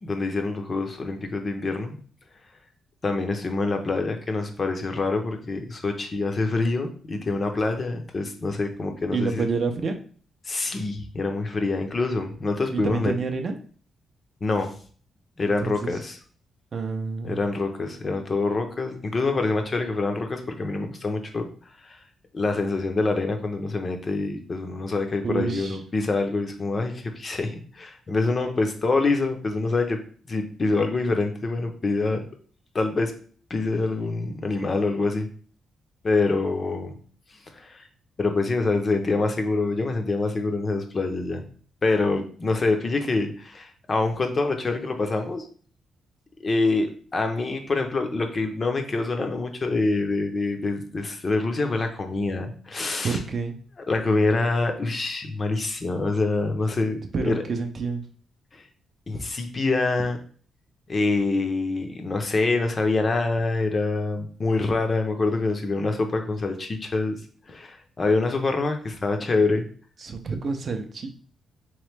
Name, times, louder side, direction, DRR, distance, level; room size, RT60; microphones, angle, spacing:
voice 1, 0.0-2.0 3.0-9.5 10.5-13.1 14.4-14.7 15.4-16.2 17.2-21.5 21.8-22.0 22.3-30.0 30.3-32.2 32.7-33.1 33.5-35.3 36.0-37.0 37.5-37.9 38.2-41.4 41.8-45.5 46.4-53.2 53.9-57.4 58.5-58.6 59.1-60.2 60.9-67.2 67.5-69.6, left 3 dB, 25° left, 5 dB, 0.5 m, -25 dB
voice 2, 9.0-10.0 12.7-13.6 15.4-15.9 16.7-17.4 25.2-25.8 53.0-53.6 57.1-58.0 70.0-71.1, right 4 dB, 40° right, 6 dB, 0.4 m, -28 dB
3.9 x 3.0 x 3.2 m, 0.43 s
wide cardioid pair, 160°, 0 cm